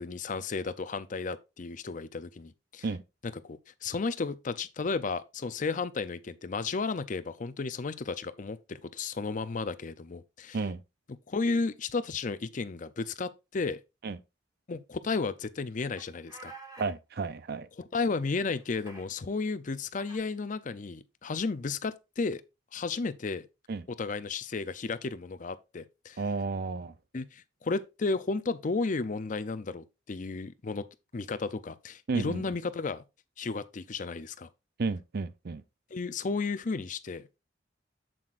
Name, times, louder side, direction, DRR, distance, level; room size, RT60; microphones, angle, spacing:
voice 1, 0.0-2.8 3.4-10.6 11.3-13.8 14.7-16.5 17.8-22.4 22.7-23.5 23.9-26.2 27.1-30.8 31.1-33.0 33.4-34.5 35.9-37.2, left 4 dB, 45° left, 0.5 m, -33 dB
sound 1, 16.0-16.9 17.9-18.0 18.3-19.0 20.0-20.2, right 2 dB, 20° right, 2.4 m, -49 dB
voice 2, 16.8-17.7 23.7-23.8 26.2-26.9 32.1-32.4 34.8-35.6, right 4 dB, 55° right, 0.5 m, -32 dB
7.7 x 7.5 x 2.5 m
head